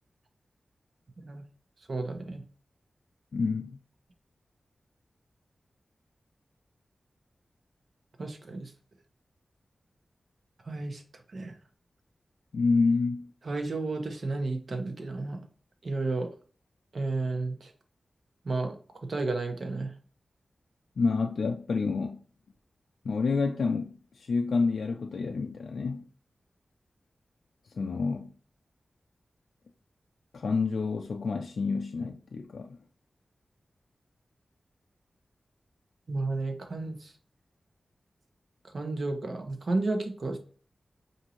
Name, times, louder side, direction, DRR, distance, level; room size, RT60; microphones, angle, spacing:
voice 1, 1.9-2.4 8.2-8.7 10.7-11.0 11.3-11.5 13.4-15.4 15.8-16.3 16.9-17.7 18.4-18.8 19.1-19.9 36.1-37.1 38.7-40.4, right 3 dB, 55° right, 0.9 m, -32 dB
voice 2, 3.3-3.8 12.5-13.3 21.0-22.2 23.0-26.0 27.7-28.3 30.3-32.8, left 4 dB, 85° left, 0.3 m, -28 dB
5.1 x 2.7 x 2.9 m
wide cardioid pair, 125°, 0 cm